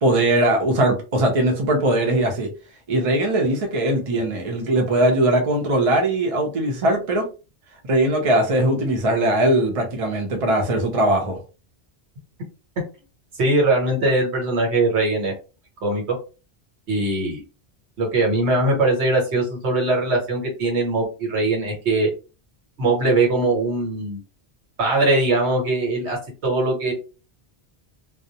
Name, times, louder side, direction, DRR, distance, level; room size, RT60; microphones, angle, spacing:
voice 1, 0.0-2.5 2.9-7.3 7.9-11.4, right 1 dB, 40° right, 2 dB, 0.6 m, -20 dB
voice 2, 13.4-15.3 15.8-16.2 16.9-17.4 18.0-22.1 22.8-24.2 24.8-26.9, right 2 dB, 85° right, 1 dB, 1.2 m, -21 dB
2.3 x 2.0 x 2.7 m, 0.32 s
omnidirectional pair, 1.1 m